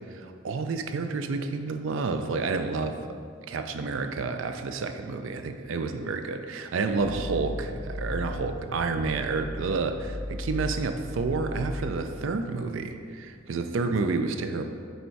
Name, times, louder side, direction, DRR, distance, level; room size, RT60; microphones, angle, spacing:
voice 1, 0.1-3.0 3.5-14.6, right 4 dB, 70° right, 7 dB, 0.4 m, -30 dB
sound 1, 6.9-12.9, left 1 dB, 10° left, 0.6 m, -37 dB
6.4 x 3.4 x 4.5 m, 2.2 s
head